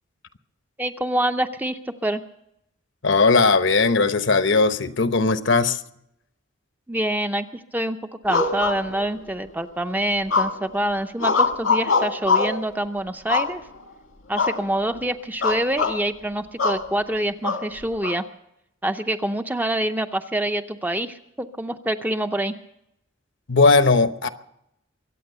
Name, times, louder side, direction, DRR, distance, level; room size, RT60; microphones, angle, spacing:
voice 1, 0.8-2.2 6.9-13.6 14.3-18.2 18.8-22.5, right 1 dB, 10° right, 0.6 m, -26 dB
voice 2, 3.0-5.8 23.5-24.3, left 4 dB, 65° left, 0.9 m, -18 dB
sound 1, 8.3-9.3 10.3-10.8 11.2-12.6 13.3-13.9 14.3-14.6 14.9-15.1 15.4-16.0 16.6-16.8 17.4-18.2, left 4 dB, 85° left, 1.8 m, -23 dB
23.0 x 8.9 x 6.8 m
head